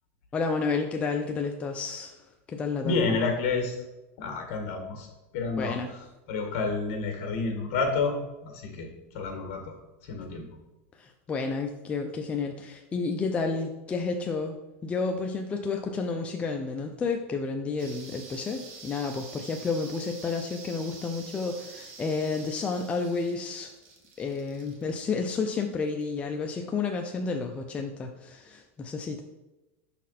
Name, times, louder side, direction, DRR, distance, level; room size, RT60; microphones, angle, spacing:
voice 1, 0.3-2.2 2.5-3.2 5.6-5.9 11.0-14.6 14.8-23.7 24.2-29.2, left 4 dB, 15° left, 3 dB, 0.4 m, -31 dB
voice 2, 2.8-3.8 4.2-5.1 5.3-8.2 8.4-8.9 9.1-9.7 10.1-10.5, left 4 dB, 60° left, 3 dB, 1.7 m, -29 dB
sound 1, 17.8-26.1, right 4 dB, 70° right, 1.4 m, -47 dB
6.0 x 4.1 x 4.2 m, 1.0 s
supercardioid pair, 140°, 7 cm